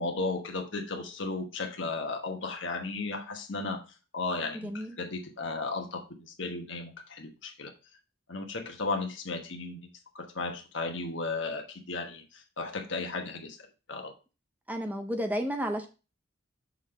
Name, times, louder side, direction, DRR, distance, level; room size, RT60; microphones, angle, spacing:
voice 1, 0.0-3.8 4.1-7.7 8.3-9.9 10.1-14.1, left 3 dB, 65° left, 3 dB, 1.2 m, -35 dB
voice 2, 4.5-5.0 14.7-15.9, equal, 10° right, 5 dB, 0.5 m, -32 dB
6.3 x 3.8 x 5.0 m, 0.32 s
head